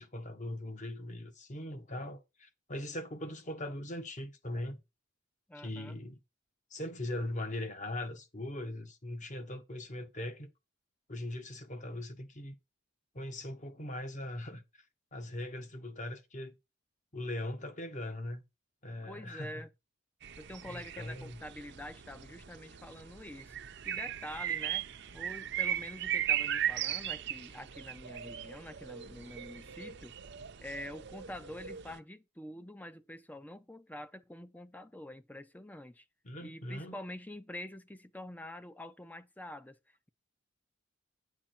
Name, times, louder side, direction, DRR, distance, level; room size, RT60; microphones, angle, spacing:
voice 1, 0.0-4.8 5.5-6.2 6.7-10.5 11.1-12.5 13.1-14.6 15.1-16.6 17.1-18.4 18.8-19.6 20.7-21.4 36.2-37.0, left 1 dB, 35° left, 1.4 m, -40 dB
voice 2, 5.5-6.0 14.5-14.6 19.1-19.7 20.4-23.6 23.8-24.9 25.1-30.2 30.6-36.1 36.4-40.1, left 1 dB, 10° left, 0.6 m, -46 dB
sound 1, 20.2-32.0, right 10 dB, 55° right, 0.7 m, -38 dB
10.0 x 7.4 x 4.4 m
head